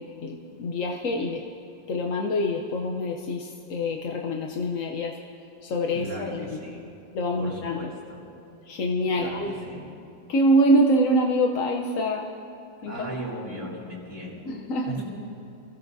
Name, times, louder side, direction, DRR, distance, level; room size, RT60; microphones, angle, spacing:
voice 1, 0.0-1.4 1.9-5.1 5.6-6.6 7.1-7.9 8.6-9.5 10.3-12.3 12.8-13.1 14.4-15.0, equal, 55° left, 1 dB, 0.9 m, -25 dB
voice 2, 5.9-6.8 7.4-8.2 9.2-9.8 12.8-14.5 15.0-15.1, equal, 10° left, -9 dB, 4.2 m, -37 dB
27.0 x 16.5 x 2.7 m, 2.5 s
omnidirectional pair, 2.1 m